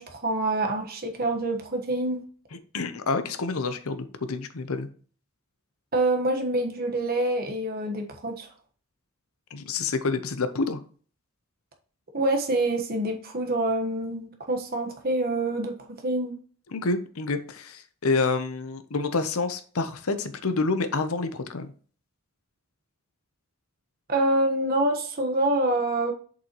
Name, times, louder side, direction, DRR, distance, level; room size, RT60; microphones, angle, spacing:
voice 1, 0.0-2.2 5.9-8.5 12.1-15.8 16.0-16.4 24.1-26.1, right 2 dB, 40° right, 3 dB, 1.2 m, -26 dB
voice 2, 2.7-4.9 9.5-10.8 16.7-21.7, left 3 dB, 80° left, 10 dB, 0.8 m, -28 dB
6.8 x 5.6 x 3.0 m, 0.43 s
head